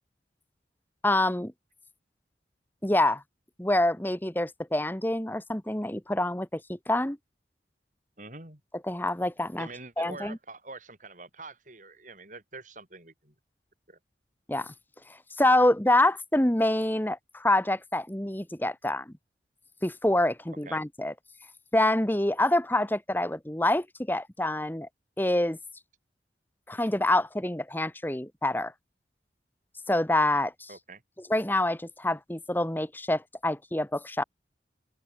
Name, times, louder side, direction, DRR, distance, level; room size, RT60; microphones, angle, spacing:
voice 1, 1.0-1.5 2.8-3.2 3.6-7.2 8.9-9.7 10.0-10.4 14.5-14.7 15.4-19.1 19.8-21.1 21.7-24.9 25.2-25.6 26.7-28.7 29.9-30.7 31.3-34.2, left 1 dB, 10° left, 1.2 m, -26 dB
voice 2, 8.2-8.6 9.6-13.3 13.9-14.0 20.6-20.8 30.7-31.0, right 3 dB, 45° right, 7.9 m, -45 dB
open air
head